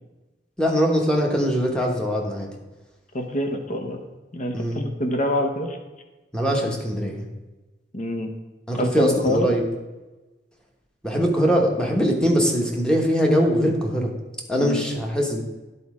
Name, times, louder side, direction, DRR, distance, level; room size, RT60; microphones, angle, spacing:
voice 1, 0.6-2.5 4.5-4.8 6.3-7.3 8.7-9.6 11.0-14.1 14.5-15.4, equal, 5° left, 0 dB, 1.1 m, -22 dB
voice 2, 3.1-4.0 4.3-5.8 7.9-8.3 8.7-9.5 14.6-14.8, left 1 dB, 45° left, 4 dB, 0.9 m, -26 dB
10.5 x 4.2 x 4.9 m, 1.1 s
head